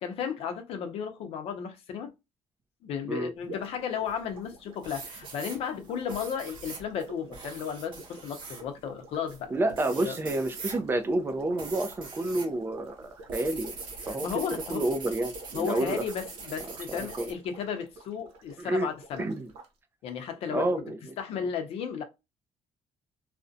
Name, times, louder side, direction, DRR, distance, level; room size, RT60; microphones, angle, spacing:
voice 1, 0.0-2.1 2.8-9.5 10.0-10.2 14.1-14.9 15.5-19.2 20.0-20.7 21.2-22.0, left 7 dB, 70° left, 0.6 m, -34 dB
sound 1, 3.4-19.7, right 2 dB, 85° right, 0.7 m, -50 dB
sound 2, 4.1-4.5 4.8-12.5 12.8-17.3, right 4 dB, 50° right, 0.9 m, -43 dB
voice 2, 9.5-13.7 14.1-14.3 14.7-16.0 16.6-17.3 18.6-18.9 19.2-19.5 20.5-21.5, right 2 dB, 20° right, 0.4 m, -30 dB
2.4 x 2.1 x 2.5 m
cardioid pair, 130°, 10 cm